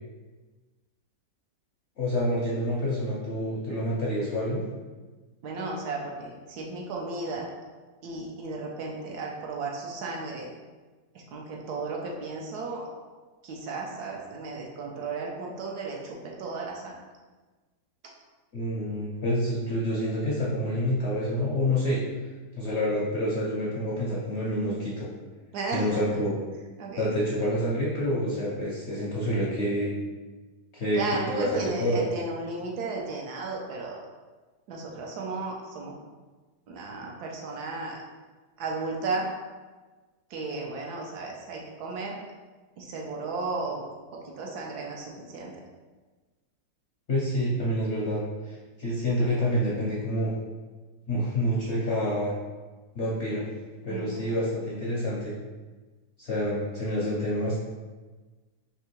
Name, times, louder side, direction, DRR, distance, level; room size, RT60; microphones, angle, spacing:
voice 1, 2.0-4.6 18.5-22.0 22.6-25.1 25.7-26.4 27.0-29.9 30.7-32.0 47.1-48.2 48.5-50.3 51.1-52.3 53.0-53.5 53.8-55.3 56.2-57.6, equal, 60° left, -6 dB, 0.7 m, -27 dB
voice 2, 5.4-7.5 8.0-10.5 11.1-12.9 13.4-17.0 25.5-26.0 26.8-27.1 30.9-34.0 34.7-35.9 36.7-38.0 38.6-39.3 40.3-42.2 42.8-43.8 44.1-45.5 53.9-54.3, right 3 dB, 70° right, -1 dB, 1.2 m, -34 dB
3.5 x 2.8 x 4.3 m, 1.3 s
omnidirectional pair, 1.9 m